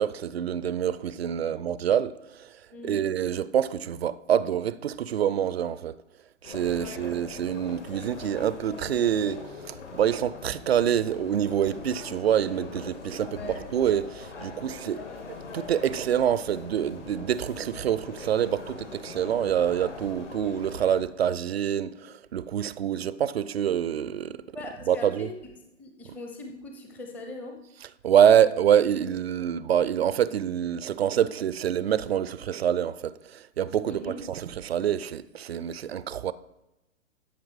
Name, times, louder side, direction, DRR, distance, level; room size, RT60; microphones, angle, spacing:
voice 1, 0.0-2.5 2.8-6.0 6.4-13.4 13.7-15.0 15.5-24.4 24.9-25.3 28.0-36.3, right 9 dB, 55° right, 0.5 m, -26 dB
voice 2, 2.7-3.0 6.7-7.1 13.3-13.6 24.5-25.3 25.8-27.6 33.9-34.2, left 2 dB, 5° left, 0.6 m, -40 dB
sound 1, 6.4-21.0, left 4 dB, 65° left, 2.5 m, -42 dB
12.0 x 6.0 x 4.7 m
figure-of-eight pair, 120°, 39 cm